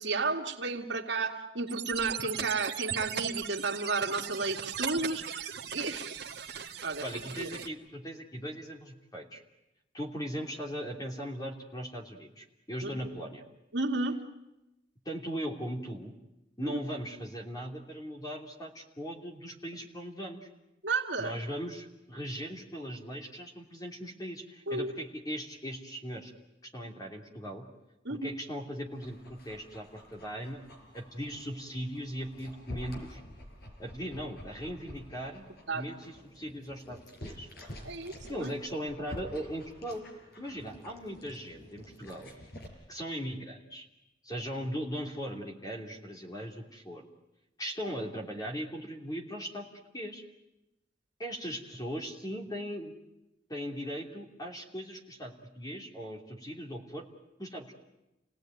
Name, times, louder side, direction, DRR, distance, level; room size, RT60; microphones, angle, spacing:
voice 1, 0.0-6.2 6.8-7.0 7.4-7.5 12.8-12.9 13.7-14.2 16.6-16.8 20.8-21.3 24.7-24.9 28.0-28.3 35.7-35.8 37.8-38.5, right 3 dB, 85° right, 3 dB, 2.3 m, -32 dB
sound 1, 1.7-7.7, right 7 dB, 65° right, 1.7 m, -38 dB
voice 2, 7.0-9.4 9.9-13.4 15.0-16.1 16.6-20.5 21.2-26.3 26.6-27.7 28.1-30.6 30.9-33.2 33.8-35.4 35.7-37.5 38.3-40.0 40.4-42.3 42.9-43.8 44.2-47.1 47.6-49.6 49.9-50.2 51.2-52.9 53.5-57.0 57.4-57.7, equal, 20° left, 0 dB, 3.0 m, -39 dB
Dog, 28.9-42.7, equal, 60° left, 4.9 m, -49 dB
29.0 x 18.0 x 9.3 m, 0.95 s
head